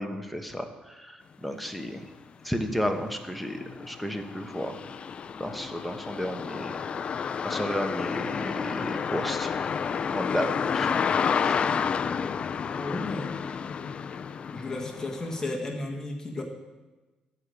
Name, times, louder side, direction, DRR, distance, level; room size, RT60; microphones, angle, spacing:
voice 1, 0.0-2.0 2.4-4.8 5.4-6.8 7.4-9.5 10.1-10.9 11.4-11.6, equal, ahead, 5 dB, 1.1 m, -32 dB
sound 1, 2.0-2.1 2.6-15.4, left 6 dB, 45° left, 0.4 m, -30 dB
voice 2, 12.7-13.3 14.5-16.4, left 2 dB, 20° left, 1 dB, 1.6 m, -34 dB
12.5 x 4.9 x 8.3 m, 1.2 s
cardioid pair, 115°, 3 cm